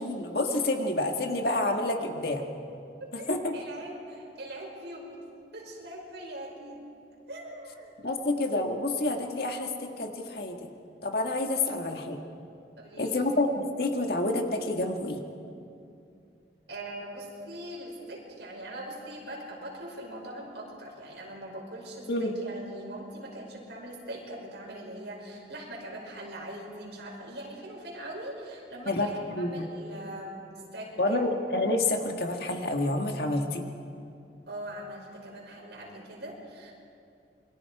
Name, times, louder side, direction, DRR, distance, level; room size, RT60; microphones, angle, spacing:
voice 1, 0.0-2.4 3.3-3.5 8.0-10.7 11.0-12.2 13.0-15.2 22.1-22.4 28.9-29.7 31.0-33.6, left 2 dB, 60° left, 3 dB, 1.8 m, -28 dB
voice 2, 3.0-5.2 5.5-6.8 7.3-7.9 12.8-13.2 16.7-30.4 30.7-31.2 34.5-36.7, right 1 dB, 75° right, -2 dB, 5.8 m, -41 dB
28.0 x 22.5 x 4.9 m, 2.6 s
head